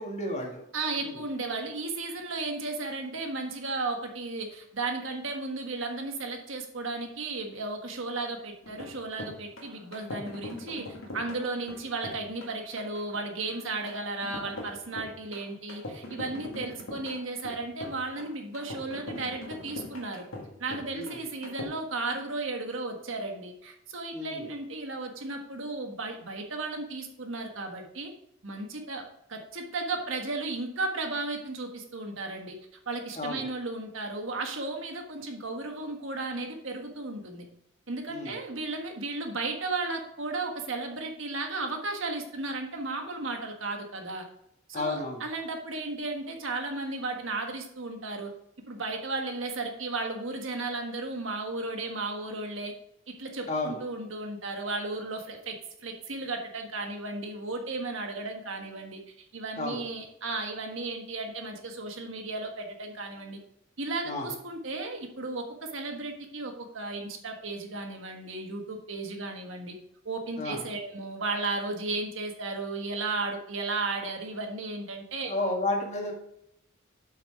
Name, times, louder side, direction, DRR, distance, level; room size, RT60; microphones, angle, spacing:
voice 1, 0.0-0.6 1.0-1.2 16.3-16.6 20.9-21.2 24.1-24.5 33.2-33.5 38.1-38.4 44.7-45.2 53.5-53.8 59.6-59.8 64.0-64.4 70.4-70.7 75.2-76.1, left 2 dB, 35° left, 0 dB, 1.8 m, -32 dB
voice 2, 0.7-10.8 11.1-20.2 20.6-28.1 28.4-29.0 29.3-32.6 32.8-37.4 37.9-44.2 44.7-48.3 48.7-52.7 53.2-55.5 55.8-59.0 59.3-63.4 63.8-69.7 70.0-75.3, right 3 dB, 70° right, 3 dB, 1.5 m, -34 dB
sound 1, 8.6-21.6, left 2 dB, 85° left, 1.8 m, -42 dB
7.7 x 6.1 x 4.8 m, 0.75 s
head